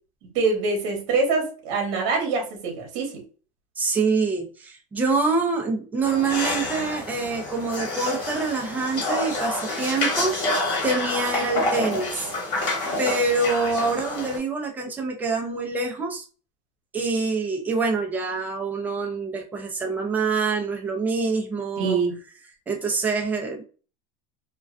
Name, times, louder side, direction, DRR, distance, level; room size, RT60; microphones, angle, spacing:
voice 1, 0.3-3.1 12.8-13.0 21.8-22.1, right 4 dB, 65° right, 0 dB, 1.0 m, -24 dB
voice 2, 3.8-12.3 13.0-16.2 16.9-22.0 22.7-23.6, right 4 dB, 10° right, 1 dB, 0.4 m, -26 dB
sound 1, 6.0-14.4, left 2 dB, 35° left, 1.2 m, -28 dB
2.3 x 2.2 x 2.4 m, 0.37 s
supercardioid pair, 145°, 17 cm